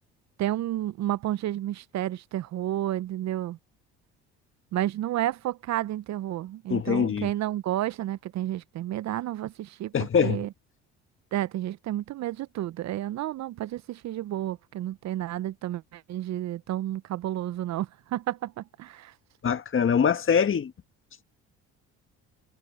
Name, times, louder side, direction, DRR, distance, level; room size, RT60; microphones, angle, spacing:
voice 1, 0.4-3.6 4.7-10.5 11.3-19.1, right 13 dB, 55° right, 0.7 m, -31 dB
voice 2, 6.7-7.3 9.9-10.4 19.4-20.7, left 7 dB, 40° left, 1.7 m, -23 dB
supercardioid pair, 65°, 32 cm